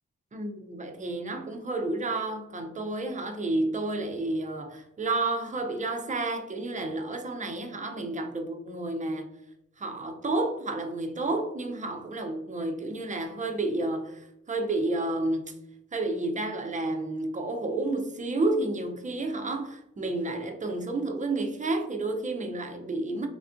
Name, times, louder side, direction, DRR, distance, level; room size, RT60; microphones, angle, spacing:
voice 1, 0.3-9.3 9.8-15.5 15.9-23.3, right 2 dB, 25° right, 0.4 m, -30 dB
3.4 x 2.4 x 2.4 m
wide cardioid pair, 90°, 31 cm